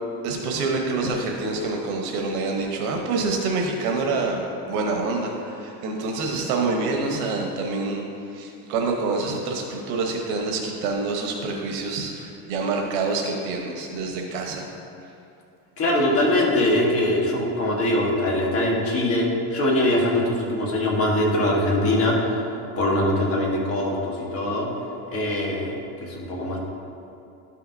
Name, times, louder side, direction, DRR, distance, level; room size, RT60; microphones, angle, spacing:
voice 1, 0.2-8.0 8.3-14.6, right 3 dB, 80° right, 1 dB, 1.0 m, -26 dB
voice 2, 15.8-22.2 22.8-24.7 25.1-25.7 26.0-26.6, left 1 dB, 30° left, -2 dB, 1.4 m, -22 dB
12.0 x 5.7 x 2.7 m, 2.7 s
cardioid pair, 145°, 44 cm